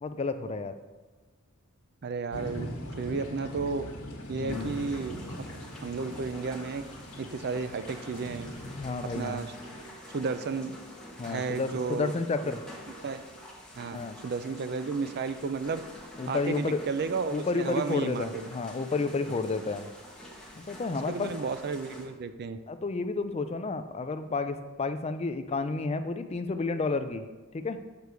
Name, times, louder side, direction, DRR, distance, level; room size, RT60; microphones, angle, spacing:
voice 1, 0.0-0.7 4.3-4.7 8.8-9.5 11.2-12.6 13.9-14.2 16.2-16.8 17.3-19.9 20.6-21.3 22.7-27.3 27.5-27.8, left 3 dB, 30° left, 9 dB, 0.4 m, -31 dB
voice 2, 2.0-2.7 3.0-3.8 4.3-5.2 5.8-6.8 7.2-8.5 9.1-9.5 10.1-10.8 11.2-12.1 12.4-12.5 13.0-13.2 13.7-15.8 16.3-18.5 19.3-19.4 21.1-22.6, right 4 dB, 50° right, 10 dB, 0.4 m, -33 dB
sound 1, 2.3-9.9, equal, 85° left, 1.4 m, -41 dB
sound 2, 4.5-22.1, left 1 dB, 5° left, 1.3 m, -47 dB
6.8 x 4.6 x 6.8 m, 1.3 s
head